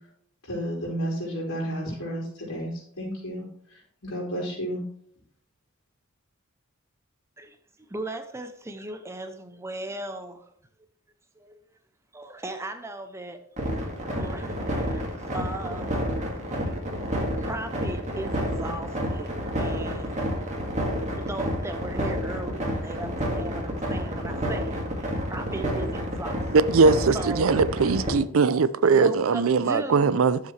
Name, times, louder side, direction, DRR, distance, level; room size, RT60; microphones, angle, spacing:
voice 1, 0.4-2.7 3.0-3.4 3.7-4.8, equal, 85° left, 4.3 m, -32 dB
voice 2, 7.9-10.4 11.4-11.5 12.1-13.4 14.1-15.1 15.3-16.3 17.4-20.4 21.2-24.8 25.0-26.4 27.1-27.5 28.9-30.1, right 2 dB, 15° right, 0.6 m, -37 dB
sound 1, 13.6-28.1, equal, 35° right, 1.9 m, -29 dB
voice 3, 26.5-30.4, right 4 dB, 65° right, 0.5 m, -20 dB
11.0 x 7.3 x 3.2 m
head